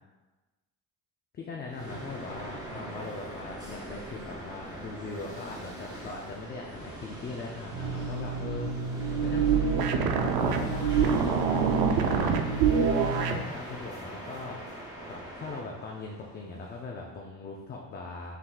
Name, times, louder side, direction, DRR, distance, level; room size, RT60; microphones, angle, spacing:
voice 1, 1.3-8.9 9.2-11.6 12.0-14.6 15.1-18.4, left 4 dB, 30° left, -1 dB, 0.4 m, -40 dB
sound 1, 1.7-16.8, right 1 dB, 10° right, 1.2 m, -42 dB
sound 2, 7.7-13.4, right 6 dB, 80° right, 0.5 m, -26 dB
5.7 x 3.5 x 2.3 m, 1.2 s
cardioid pair, 140°, 38 cm